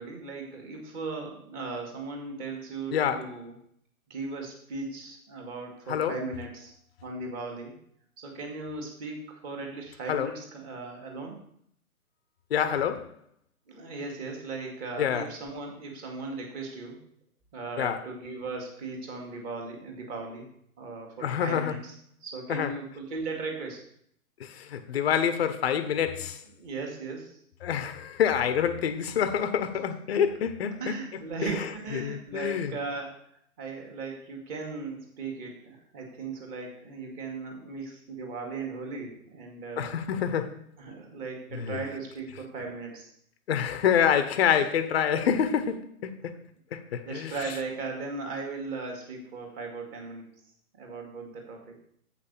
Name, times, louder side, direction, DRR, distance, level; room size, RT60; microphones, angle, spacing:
voice 1, 0.0-3.5 4.1-6.7 7.0-7.7 8.2-11.4 13.7-17.0 17.5-20.5 20.8-21.9 22.2-23.8 26.6-27.4 30.6-33.2 33.6-39.9 40.8-43.1 47.1-50.3 50.8-51.8, right 3 dB, 20° right, 1.8 m, -37 dB
voice 2, 2.9-3.3 5.9-6.1 10.1-10.3 12.5-13.1 15.0-15.3 17.8-18.0 21.2-21.7 22.5-22.7 24.4-26.4 27.6-31.0 31.5-31.7 31.9-32.7 39.8-40.6 41.5-41.8 43.5-46.4 46.7-47.3, left 8 dB, 40° left, 0.8 m, -27 dB
7.6 x 5.8 x 6.8 m
hypercardioid pair, 150°, 45 cm